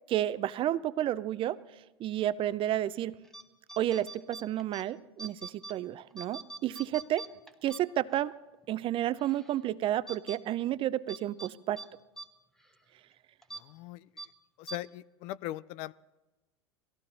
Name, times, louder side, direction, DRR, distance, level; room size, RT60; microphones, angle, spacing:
voice 1, 0.1-1.6 2.0-3.2 3.8-7.2 7.6-8.3 8.7-11.8, right 12 dB, 40° right, 17 dB, 0.5 m, -31 dB
sound 1, 3.2-3.4 3.7-4.8 5.2-5.7 6.1-8.3 8.6-8.7 9.2-9.6 10.1-10.4 11.1-11.5 11.8-11.9 12.2-12.3 12.6-12.8 13.4-13.6 14.2-14.3 14.7-14.8, right 3 dB, 5° left, 1.1 m, -44 dB
voice 2, 13.5-14.1 14.6-15.9, left 16 dB, 55° left, 20 dB, 0.4 m, -40 dB
17.5 x 15.0 x 4.2 m, 1.1 s
hypercardioid pair, 95°, 14 cm